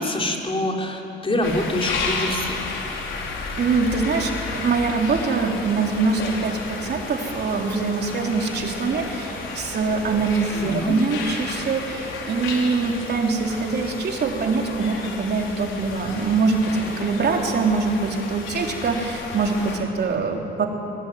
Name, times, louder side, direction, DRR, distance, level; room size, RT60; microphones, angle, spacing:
voice 1, 0.0-2.7 10.6-10.9, left 1 dB, 25° left, 0 dB, 4.1 m, -25 dB
sound 1, 1.4-19.8, left 4 dB, 80° left, 4.6 m, -32 dB
voice 2, 3.6-20.7, right 4 dB, 55° right, 1 dB, 3.6 m, -23 dB
24.0 x 22.5 x 9.5 m, 2.8 s
cardioid pair, 90°, 20 cm